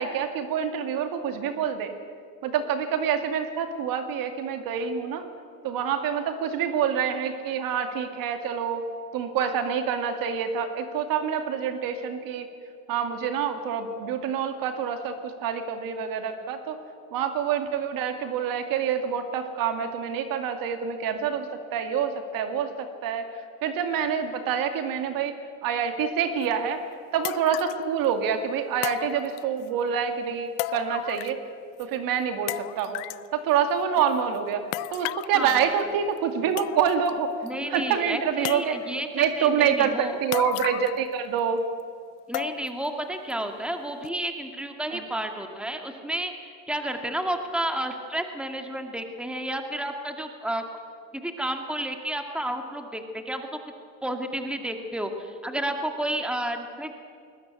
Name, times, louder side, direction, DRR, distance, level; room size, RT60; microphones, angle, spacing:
voice 1, 0.0-1.9 2.4-5.3 5.6-8.8 9.1-12.5 12.9-16.8 17.1-25.3 25.6-26.8 27.1-31.4 31.8-33.0 33.3-34.6 34.9-37.3 37.7-38.8 39.1-41.6 44.9-45.0, right 7 dB, 60° right, 7 dB, 2.4 m, -27 dB
sound 1, 26.4-26.5 27.2-27.9 28.8-29.7 30.6-31.5 31.8-31.9 32.5-33.3 34.7-35.4 36.2-36.3 36.6-37.1 37.5-37.6 38.4-39.0 40.3-41.1 41.4-41.5 42.3-42.9 43.3-43.4 44.0-44.1, left 19 dB, 75° left, 0.7 m, -34 dB
voice 2, 37.4-40.2 42.3-46.3 46.7-50.6 51.1-53.5 54.0-56.9, right 1 dB, 5° right, 5 dB, 2.1 m, -31 dB
20.5 x 20.5 x 8.4 m, 2.3 s
supercardioid pair, 110°, 38 cm